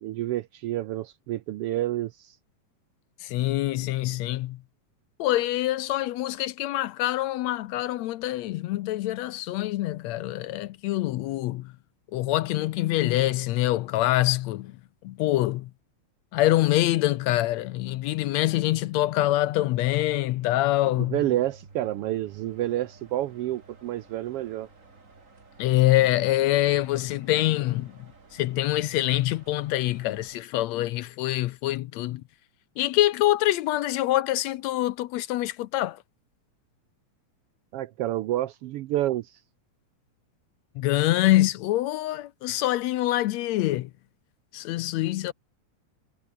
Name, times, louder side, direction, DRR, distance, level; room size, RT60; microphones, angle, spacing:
voice 1, 0.0-2.4 20.9-24.7 37.7-39.4, right 14 dB, 80° right, 1.3 m, -29 dB
voice 2, 3.2-4.6 5.2-11.7 12.1-14.7 15.0-15.7 16.3-21.2 25.6-27.9 28.3-32.2 32.8-36.0 40.8-43.9 44.5-45.3, left 15 dB, 75° left, 1.8 m, -25 dB
sound 1, 21.1-30.4, right 3 dB, 25° right, 3.0 m, -53 dB
omnidirectional pair, 3.3 m